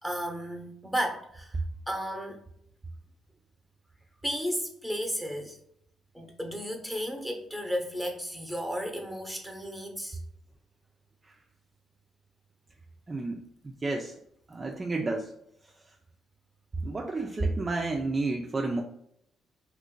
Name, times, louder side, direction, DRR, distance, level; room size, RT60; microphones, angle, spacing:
voice 1, 0.0-1.6 1.9-2.4 4.2-5.6 6.1-10.2, equal, ahead, 3 dB, 0.8 m, -33 dB
voice 2, 13.1-14.2 14.5-15.3 16.8-18.8, right 3 dB, 25° right, 2 dB, 0.4 m, -31 dB
2.9 x 2.5 x 3.7 m, 0.73 s
cardioid pair, 90°, 0 cm